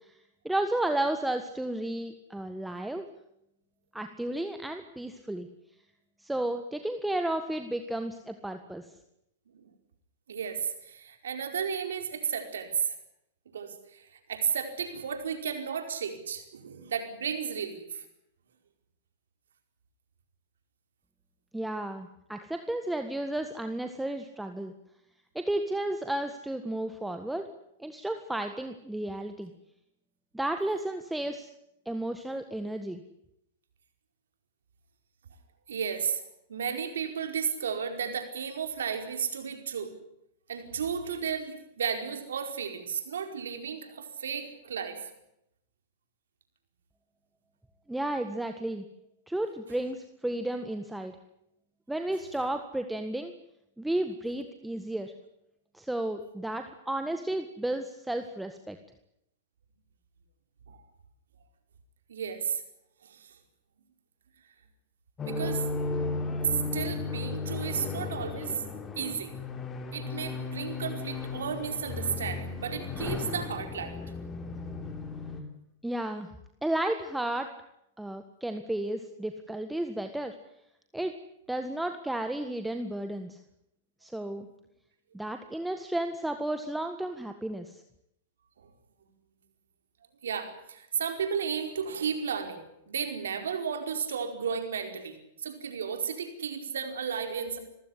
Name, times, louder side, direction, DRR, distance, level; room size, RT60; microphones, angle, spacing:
voice 1, 0.5-3.1 3.9-5.5 6.2-8.9 21.5-24.7 25.4-27.5 27.8-29.5 30.3-31.5 31.9-33.0 47.9-48.8 49.3-51.2 51.9-53.4 53.8-55.1 55.7-58.8 75.8-76.3 76.6-77.5 78.0-80.3 80.9-81.2 81.5-83.4 84.0-84.5 85.1-87.8, right 1 dB, 5° right, 7 dB, 1.7 m, -33 dB
voice 2, 10.3-13.0 13.5-18.0 35.7-36.2 36.5-39.9 40.5-45.1 60.7-60.8 62.1-62.6 63.0-63.3 65.2-65.6 66.5-69.3 69.9-74.0 88.6-88.7 90.2-95.2 95.4-97.6, right 7 dB, 80° right, 6 dB, 4.8 m, -33 dB
sound 1, 65.2-75.4, left 3 dB, 20° left, 3.6 m, -35 dB
27.0 x 15.5 x 10.0 m, 0.79 s
hypercardioid pair, 120°, 0 cm